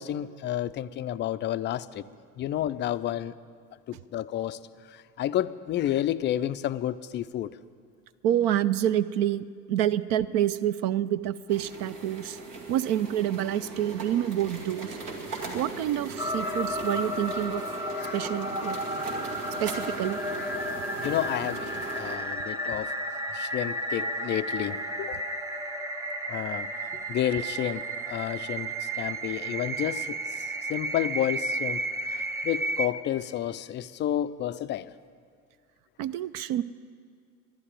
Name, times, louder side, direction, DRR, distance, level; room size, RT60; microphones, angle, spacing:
voice 1, 0.0-2.1 2.4-3.3 3.9-4.6 4.9-7.6 16.4-16.6 18.0-18.2 20.4-20.6 21.0-22.9 23.3-25.2 26.3-34.9, left 12 dB, 25° left, 13 dB, 0.4 m, -31 dB
voice 2, 8.2-12.4 12.7-15.0 15.5-17.6 18.1-18.8 19.6-20.2 36.0-36.6, right 11 dB, 50° right, 15 dB, 0.5 m, -27 dB
sound 1, 11.5-22.2, right 3 dB, 70° right, 2.3 m, -39 dB
sound 2, 16.2-32.9, right 1 dB, 5° right, 0.9 m, -33 dB
12.5 x 11.0 x 9.0 m, 2.1 s
figure-of-eight pair, 70°, 47 cm